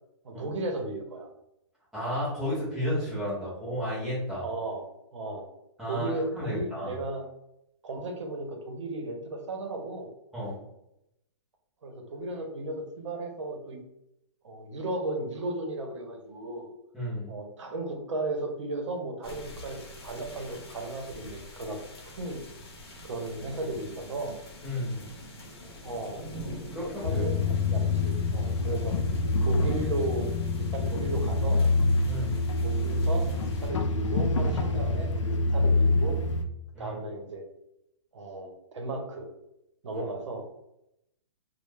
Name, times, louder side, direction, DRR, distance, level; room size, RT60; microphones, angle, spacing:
voice 1, 0.2-1.3 4.4-4.8 5.1-5.5 5.8-7.3 7.8-10.1 11.8-13.8 14.4-16.7 17.3-21.8 22.1-22.4 23.0-24.3 25.8-26.3 26.8-29.0 29.4-30.3 30.6-31.6 32.6-33.3 33.6-36.2 36.8-37.4 38.1-39.3 39.8-40.5, right 2 dB, 80° right, 3 dB, 0.7 m, -35 dB
voice 2, 1.9-4.5 5.8-7.0 10.3-10.6 16.9-17.3 24.6-25.0 26.7-27.3 28.7-28.8 32.0-32.4 36.7-37.0 39.9-40.0, equal, ahead, -11 dB, 0.4 m, -32 dB
sound 1, 19.2-33.7, equal, 55° left, 0.7 m, -45 dB
sound 2, 27.0-36.4, left 2 dB, 90° left, 0.4 m, -26 dB
2.2 x 2.0 x 3.1 m, 0.83 s
hypercardioid pair, 175°, 15 cm